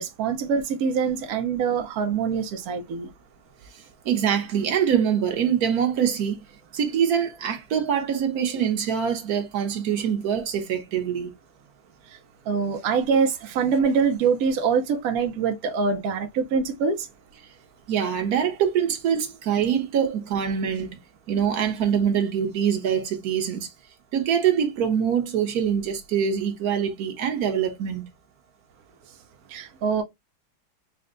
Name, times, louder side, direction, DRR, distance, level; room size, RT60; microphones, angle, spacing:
voice 1, 0.0-3.1 12.1-12.2 12.5-17.1 29.5-30.0, right 5 dB, 80° right, 0.8 m, -24 dB
voice 2, 4.0-6.4 6.7-11.3 17.9-21.0 21.3-23.7 24.1-28.1, right 8 dB, 55° right, 1.2 m, -24 dB
4.3 x 2.1 x 3.7 m
omnidirectional pair, 2.2 m